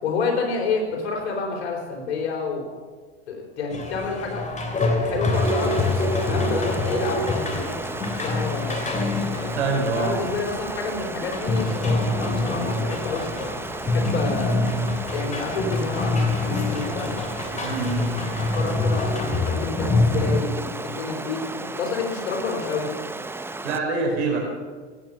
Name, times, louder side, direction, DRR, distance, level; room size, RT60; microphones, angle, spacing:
voice 1, 0.0-2.6 3.3-4.5 5.0-7.8 8.1-8.8 9.9-13.6 13.9-14.6 15.1-17.2 18.4-21.5 21.8-22.9, left 4 dB, 80° left, 1 dB, 4.4 m, -29 dB
sound 1, 3.7-20.4, left 2 dB, 20° left, 2.9 m, -26 dB
Stream, 5.3-23.8, right 2 dB, 5° right, 0.6 m, -34 dB
voice 2, 9.5-10.2 17.6-18.2 23.6-24.4, right 4 dB, 80° right, 1 dB, 4.8 m, -25 dB
16.5 x 9.1 x 6.8 m, 1.4 s
hypercardioid pair, 95°, 33 cm